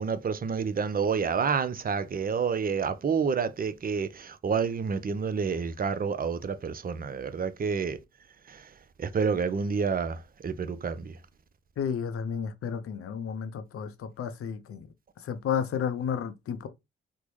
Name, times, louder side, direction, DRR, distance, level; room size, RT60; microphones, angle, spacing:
voice 1, 0.0-8.0 8.5-11.2, right 5 dB, 30° right, 0.5 m, -29 dB
voice 2, 11.8-14.9 15.2-16.7, left 7 dB, 50° left, 0.6 m, -32 dB
3.4 x 2.0 x 3.1 m
hypercardioid pair, 45°, 30 cm